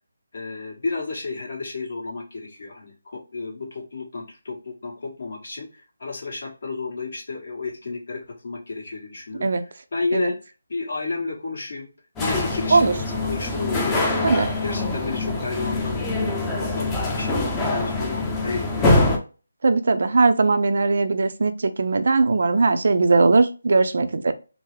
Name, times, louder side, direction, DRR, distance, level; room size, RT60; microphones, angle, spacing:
voice 1, 0.3-9.5 9.9-10.4 10.7-11.9 12.2-19.0, left 3 dB, 55° left, 1.5 m, -32 dB
sound 1, 12.2-19.2, left 2 dB, 10° left, 0.5 m, -24 dB
voice 2, 19.6-24.3, right 3 dB, 60° right, 0.4 m, -19 dB
3.6 x 2.0 x 3.2 m
figure-of-eight pair, 165°, 0 cm